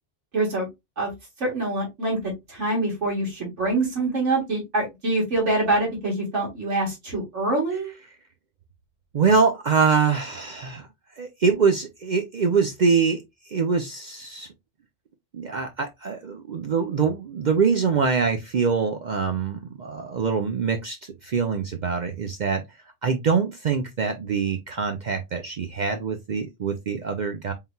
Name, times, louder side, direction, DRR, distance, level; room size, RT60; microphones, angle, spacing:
voice 1, 0.3-0.7 1.0-1.1 1.4-7.9, right 2 dB, 80° right, 2.0 m, -25 dB
voice 2, 9.1-10.9 11.2-13.2 13.5-14.5 15.3-22.6 23.0-27.5, right 5 dB, 55° right, 0.6 m, -24 dB
4.1 x 3.8 x 2.2 m
omnidirectional pair, 1.2 m